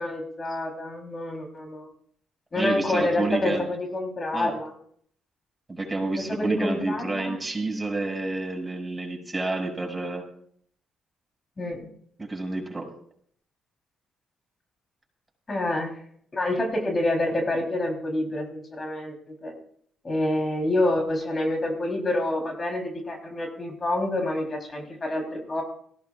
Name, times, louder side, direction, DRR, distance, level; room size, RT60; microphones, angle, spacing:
voice 1, 0.0-1.9 2.5-4.7 6.3-7.4 11.6-11.9 15.5-15.9 16.3-19.5 20.0-25.6, left 1 dB, 35° left, 1 dB, 3.8 m, -27 dB
voice 2, 2.6-3.7 4.3-4.5 5.7-10.2 12.2-12.9, right 2 dB, 20° right, 1 dB, 6.3 m, -29 dB
19.0 x 16.5 x 2.5 m, 0.62 s
hypercardioid pair, 45°, 0 cm